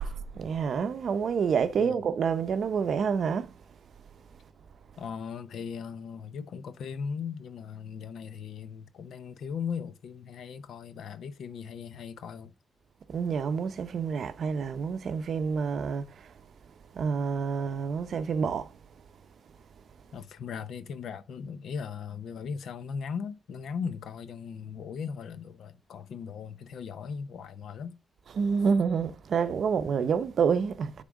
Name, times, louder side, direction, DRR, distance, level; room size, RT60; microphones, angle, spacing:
voice 1, 0.0-3.5 13.1-16.3 16.9-18.7 28.4-31.0, right 6 dB, 60° right, 0.6 m, -28 dB
voice 2, 5.0-12.5 20.1-28.0, left 6 dB, 80° left, 0.7 m, -38 dB
9.9 x 3.7 x 3.6 m
cardioid pair, 125°, 0 cm